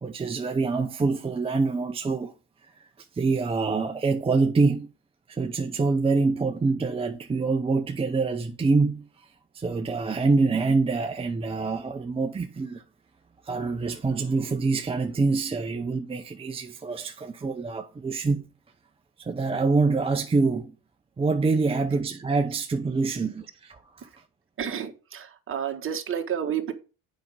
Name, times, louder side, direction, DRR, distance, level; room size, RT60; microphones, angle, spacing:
voice 1, 0.0-2.3 3.1-4.9 5.3-9.3 9.5-12.8 13.4-18.5 19.2-20.8 21.2-24.1, right 4 dB, 15° right, 0.6 m, -25 dB
voice 2, 24.6-26.7, right 8 dB, 35° right, 1.7 m, -30 dB
8.3 x 5.3 x 6.3 m
cardioid pair, 120°, 34 cm